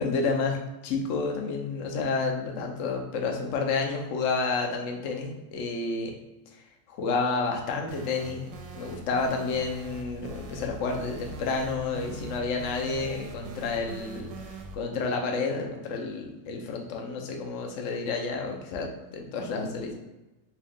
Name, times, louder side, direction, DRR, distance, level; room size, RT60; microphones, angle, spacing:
voice 1, 0.0-6.1 6.5-6.6 6.9-8.5 8.7-14.3 14.7-19.9, left 4 dB, 80° left, 2 dB, 0.6 m, -30 dB
sound 1, 7.9-14.7, right 2 dB, 70° right, 1.1 m, -41 dB
4.5 x 2.4 x 3.5 m, 1.0 s
omnidirectional pair, 2.1 m